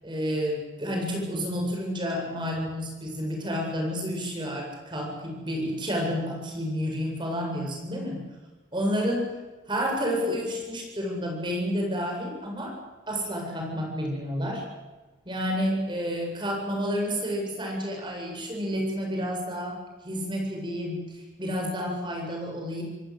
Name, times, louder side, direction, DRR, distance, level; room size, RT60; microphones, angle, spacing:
voice 1, 0.0-8.3 8.7-9.3 9.7-12.8 13.1-14.7 15.2-19.8 20.0-22.8, equal, 25° right, 1 dB, 7.8 m, -30 dB
27.5 x 18.0 x 8.0 m, 1.2 s
head